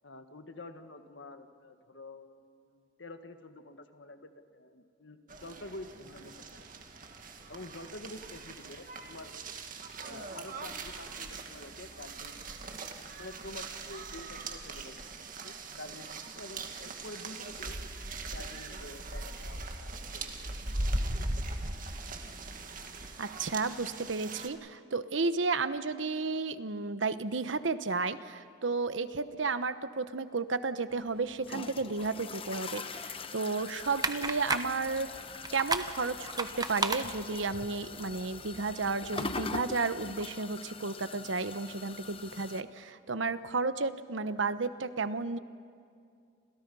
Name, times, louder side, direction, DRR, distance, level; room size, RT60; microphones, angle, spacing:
voice 1, 0.0-6.7 7.5-9.3 10.0-12.4 13.2-15.0 15.4-16.1 16.4-17.8 18.3-20.3, left 2 dB, 80° left, 7 dB, 1.8 m, -48 dB
sound 1, 5.3-24.5, right 2 dB, 45° right, 2.0 m, -40 dB
voice 2, 23.2-35.1 35.5-45.4, right 4 dB, 85° right, 12 dB, 1.0 m, -33 dB
sound 2, 30.9-42.6, left 4 dB, 30° left, 1.0 m, -42 dB
sound 3, 33.8-39.3, right 4 dB, 20° right, 1.0 m, -37 dB
30.0 x 27.0 x 5.5 m, 2.3 s
head